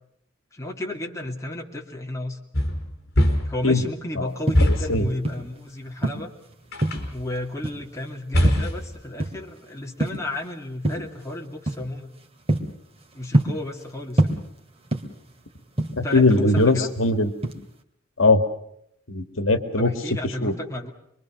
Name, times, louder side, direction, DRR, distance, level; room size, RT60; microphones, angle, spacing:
voice 1, 0.5-2.4 3.4-6.3 7.1-12.1 13.1-14.4 16.0-16.9 19.8-20.9, left 1 dB, 15° left, 0 dB, 2.7 m, -33 dB
sound 1, 2.5-3.7 4.5-5.1 6.7-7.2 8.3-9.0, equal, 55° left, 4.6 m, -22 dB
sound 2, 4.3-5.6 6.0-7.2 7.6-8.0 8.4-9.6 9.8-10.4 10.8-11.2 11.7-11.9 12.2-13.9 14.2-15.3 15.6-17.1 17.4-17.8, right 1 dB, 30° right, 2.5 m, -25 dB
voice 2, 16.0-17.3 18.2-18.4 19.1-19.9 20.4-20.5, left 2 dB, 75° left, 8 dB, 2.1 m, -20 dB
26.5 x 23.0 x 6.5 m, 0.74 s
head